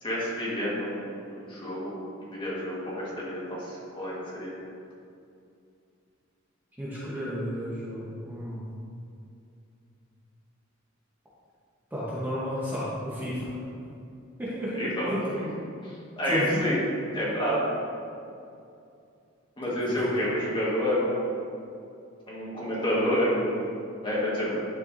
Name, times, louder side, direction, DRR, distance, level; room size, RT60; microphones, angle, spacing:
voice 1, 0.0-1.9 2.2-4.5 14.7-15.1 15.8-16.8 17.1-17.7 19.6-21.3 22.3-23.7 24.0-24.6, equal, 25° left, -7 dB, 1.6 m, -29 dB
voice 2, 6.8-8.6 11.9-13.6 14.4-15.2 16.3-16.6 19.7-20.1, equal, 10° right, -8 dB, 1.1 m, -32 dB
10.0 x 4.6 x 2.7 m, 2.5 s
head